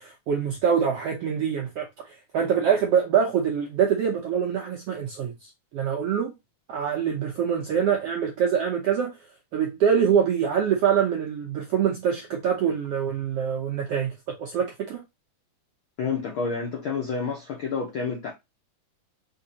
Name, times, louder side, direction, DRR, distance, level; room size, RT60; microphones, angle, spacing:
voice 1, 0.0-6.3 6.7-9.2 9.5-15.0, right 7 dB, 75° right, 1.4 m, -25 dB
voice 2, 16.0-18.3, left 5 dB, 75° left, 1.2 m, -29 dB
4.7 x 3.6 x 2.7 m
omnidirectional pair, 3.6 m